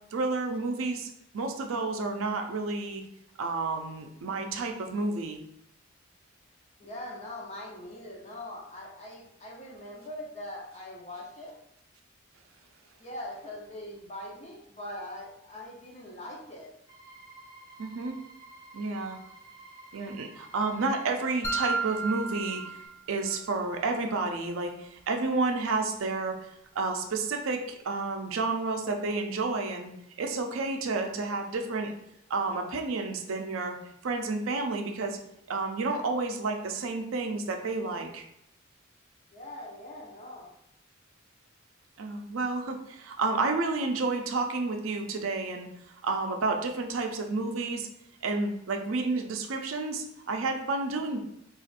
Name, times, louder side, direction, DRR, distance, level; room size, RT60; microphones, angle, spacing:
voice 1, 0.1-3.0 3.4-5.4 17.8-18.2 18.7-19.2 19.9-22.7 23.1-26.5 26.8-29.9 30.2-31.9 32.3-33.8 34.0-35.2 35.5-38.2 42.0-45.7 46.0-47.9 48.2-51.2, right 3 dB, 80° right, 4 dB, 0.5 m, -30 dB
voice 2, 6.8-11.6 13.0-16.7 39.3-40.5, left 1 dB, 30° left, -2 dB, 0.7 m, -42 dB
sound 1, 16.9-22.9, right 2 dB, 20° right, 0.9 m, -51 dB
sound 2, 21.4-23.5, right 4 dB, 15° left, 0.3 m, -33 dB
4.1 x 2.4 x 2.5 m, 0.81 s
head